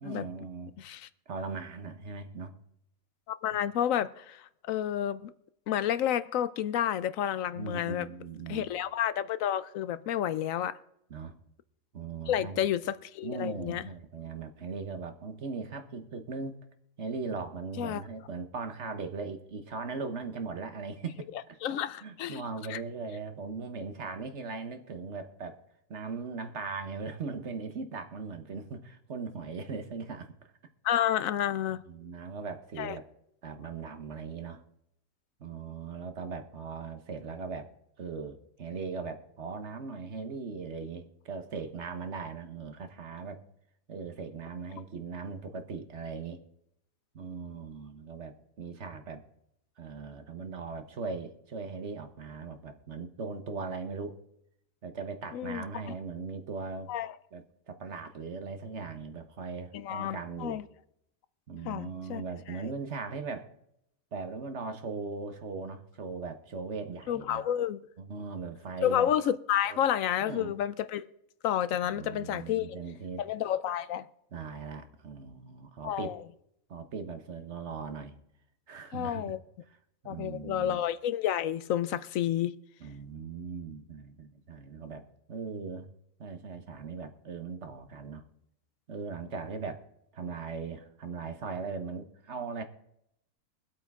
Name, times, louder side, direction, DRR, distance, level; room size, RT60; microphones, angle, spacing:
voice 1, 0.0-0.7 1.3-2.6 7.5-8.7 11.1-11.3 11.9-12.6 13.2-16.6 17.0-21.6 22.0-25.6 25.9-30.3 31.8-33.1 33.4-34.6 35.4-37.7 38.0-43.4 43.9-46.4 47.1-49.2 49.8-54.2 54.8-56.9 57.3-60.6 61.5-63.5 64.1-67.4 68.0-69.1 69.7-69.8 70.2-70.5 71.9-73.2 74.3-76.1 76.7-78.1 78.7-79.4 79.7-79.8 80.0-80.8 82.8-85.9 86.2-88.2 88.9-89.8 90.1-92.6, right 4 dB, 55° right, 1.3 m, -39 dB
voice 2, 0.8-1.1 3.3-5.3 5.7-8.1 8.5-10.8 12.3-13.8 17.8-18.0 21.6-22.4 22.7-22.8 30.8-31.8 32.8-33.0 55.3-55.6 56.9-57.1 59.7-60.6 61.7-62.2 67.1-67.9 68.8-71.1 71.4-72.8 73.2-74.0 75.8-76.2 78.9-79.4 80.1-82.5, left 10 dB, 75° left, 1.0 m, -30 dB
23.5 x 8.2 x 3.6 m
omnidirectional pair, 1.4 m